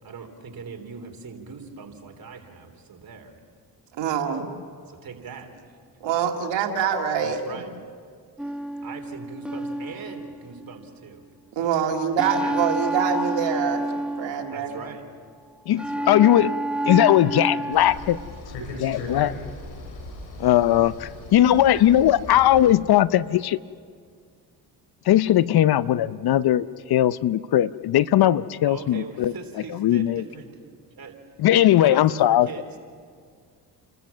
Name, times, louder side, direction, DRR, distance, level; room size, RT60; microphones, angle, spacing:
voice 1, 0.0-3.4 4.9-5.5 7.2-7.7 8.8-11.2 11.5-11.9 12.2-12.6 14.5-15.0 15.7-16.2 28.7-30.6 31.0-31.2 31.7-32.8, right 5 dB, 55° right, 4 dB, 3.4 m, -41 dB
voice 2, 3.9-4.5 6.0-7.6 11.6-13.8 14.2-14.8, right 7 dB, 75° right, 3 dB, 2.2 m, -25 dB
sound 1, 8.4-10.9 12.2-15.0 15.8-18.4, right 1 dB, ahead, 1.2 m, -29 dB
voice 3, 15.7-16.5 16.9-18.2 18.8-19.3 20.4-23.6 25.1-29.3 29.8-30.2 31.4-32.5, left 12 dB, 60° left, 17 dB, 0.6 m, -19 dB
sound 2, 17.7-22.7, left 2 dB, 85° left, 4.6 m, -38 dB
30.0 x 13.5 x 7.3 m, 2.1 s
supercardioid pair, 65°, 43 cm